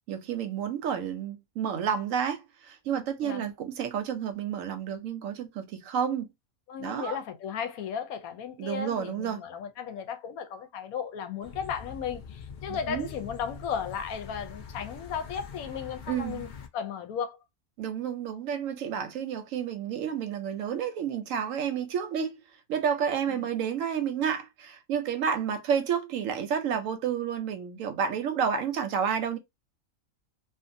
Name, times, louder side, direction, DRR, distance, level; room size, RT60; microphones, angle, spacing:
voice 1, 0.1-6.3 6.8-7.2 8.6-9.4 12.7-13.1 16.1-16.5 17.8-22.4 22.7-29.4, right 7 dB, 70° right, 0.9 m, -30 dB
voice 2, 6.7-17.4 23.4-23.5, left 7 dB, 85° left, 1.1 m, -35 dB
sound 1, 11.4-16.7, left 6 dB, 70° left, 0.4 m, -44 dB
2.6 x 2.4 x 2.5 m
omnidirectional pair, 1.5 m